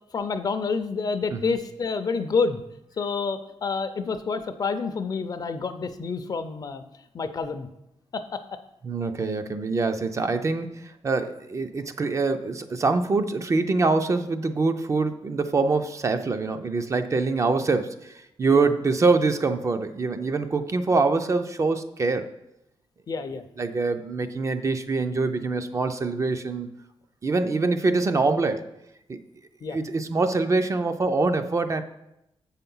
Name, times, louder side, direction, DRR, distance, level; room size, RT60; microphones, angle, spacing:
voice 1, 0.1-2.6 3.0-6.8 7.1-7.7 8.1-8.4 18.5-18.6 23.1-23.4 29.6-29.8, left 4 dB, 40° left, 10 dB, 0.5 m, -28 dB
voice 2, 8.8-22.3 23.6-26.7 27.2-28.7 29.1-29.2 29.7-31.8, right 3 dB, 30° right, 8 dB, 0.4 m, -24 dB
7.7 x 5.7 x 5.4 m, 0.85 s
wide cardioid pair, 175°, 10 cm